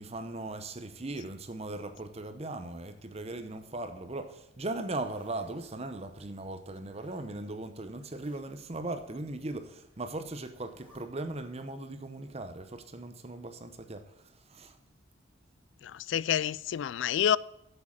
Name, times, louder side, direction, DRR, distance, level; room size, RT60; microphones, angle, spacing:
voice 1, 0.0-14.8, right 2 dB, 30° right, 0.8 m, -39 dB
Zipper (clothing), 3.1-4.1 4.5-5.7 6.9-7.3 8.0-8.6 9.9-10.2 10.6-11.0, equal, 5° right, 4.5 m, -64 dB
voice 2, 15.8-17.4, left 9 dB, 65° left, 0.3 m, -28 dB
8.0 x 7.4 x 7.3 m
head